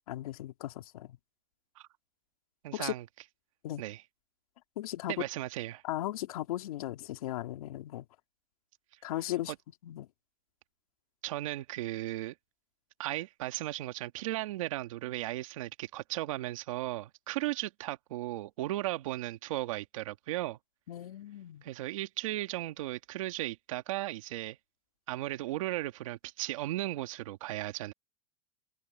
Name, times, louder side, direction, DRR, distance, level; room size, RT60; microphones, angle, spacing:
voice 1, 0.1-1.2 2.7-2.9 3.6-3.8 4.8-5.1 5.8-8.1 9.0-9.5 9.8-10.1 20.9-21.6, left 14 dB, 65° left, 2.3 m, -37 dB
voice 2, 2.6-3.0 3.8-4.0 5.1-5.8 11.2-12.4 13.0-20.6 21.6-24.6 25.1-27.9, right 16 dB, 55° right, 1.8 m, -36 dB
supercardioid pair, 175°, 20 cm